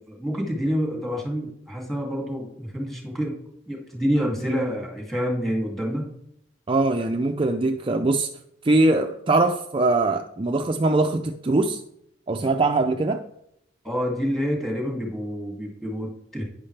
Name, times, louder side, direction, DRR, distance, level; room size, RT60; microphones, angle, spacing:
voice 1, 0.1-3.4 3.7-6.1 13.8-16.4, equal, ahead, 2.4 m, -27 dB
voice 2, 6.7-8.3 8.6-11.8 12.3-13.2, right 2 dB, 30° right, 0.5 m, -22 dB
11.5 x 9.6 x 3.3 m
head